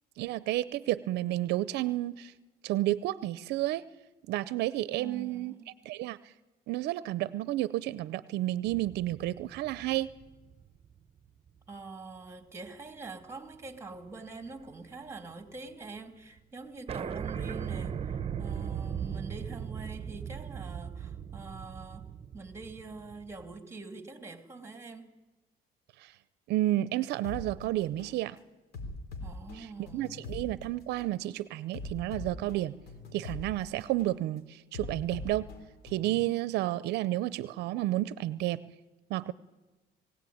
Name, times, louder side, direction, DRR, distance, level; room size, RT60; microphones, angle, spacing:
voice 1, 0.2-2.3 2.6-3.8 4.3-5.5 5.8-6.3 6.7-10.1 26.0-26.1 26.5-28.4 29.5-29.7 29.9-32.7 33.1-35.5 35.8-38.6 39.1-39.3, right 15 dB, 80° right, 0.6 m, -31 dB
voice 2, 4.9-5.7 11.7-22.1 22.3-25.1 29.2-30.2, right 3 dB, 15° right, 2.6 m, -45 dB
sound 1, 8.7-11.3 11.7-11.8 13.3-13.7 13.9-15.4 15.7-15.8 16.0-16.1 16.4-16.5 16.9-23.6, right 8 dB, 35° right, 1.0 m, -38 dB
sound 2, 27.2-27.5 28.0-28.2 28.7-30.5 31.0-31.2 31.7-33.5 34.0-34.2 34.7-36.2, left 2 dB, 70° left, 4.2 m, -42 dB
20.5 x 17.0 x 9.4 m
cardioid pair, 110°, 17 cm